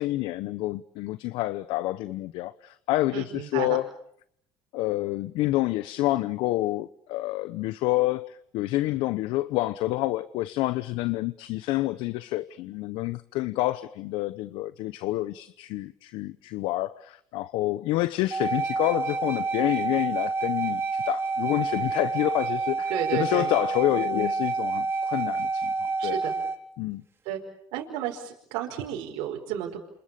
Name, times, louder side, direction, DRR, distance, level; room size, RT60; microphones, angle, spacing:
voice 1, 0.0-3.9 4.7-26.2 26.8-27.0, left 17 dB, 75° left, 1.0 m, -28 dB
voice 2, 3.1-3.8 22.9-23.5 26.0-26.3 27.2-27.4 27.7-29.8, right 11 dB, 80° right, 5.1 m, -32 dB
sound 1, 18.3-26.6, right 4 dB, 30° right, 4.5 m, -28 dB
29.0 x 27.5 x 7.0 m
supercardioid pair, 90°, 9 cm